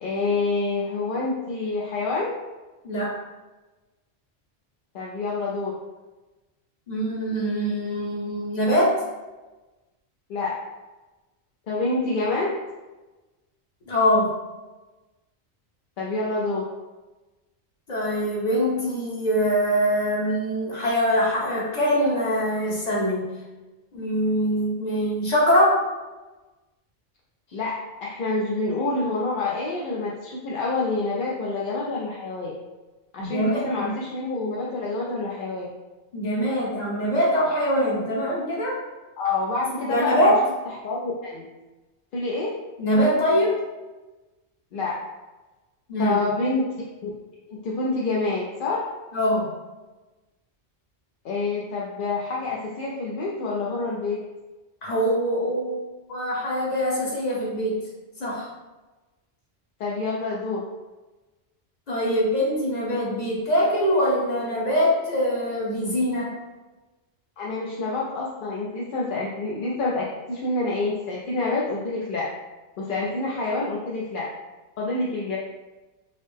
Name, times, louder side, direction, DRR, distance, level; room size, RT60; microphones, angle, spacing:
voice 1, 0.0-2.3 4.9-5.7 10.3-10.5 11.7-12.5 16.0-16.6 27.5-27.7 28.0-32.5 33.1-35.7 39.2-40.3 40.8-41.4 42.1-42.5 44.7-44.9 46.0-46.6 47.0-47.1 47.5-48.8 51.2-54.2 59.8-60.6 67.4-72.3 72.8-74.3 74.8-75.4, left 3 dB, 60° left, -4 dB, 0.6 m, -27 dB
voice 2, 6.9-8.9 13.9-14.3 17.9-23.2 23.9-25.8 33.2-34.0 36.1-38.7 39.8-40.4 42.8-43.6 45.9-46.2 49.1-49.5 54.8-55.8 56.1-57.8 58.2-58.5 61.9-66.3, equal, 40° left, -5 dB, 1.0 m, -23 dB
4.0 x 2.0 x 3.3 m, 1.2 s
omnidirectional pair, 1.1 m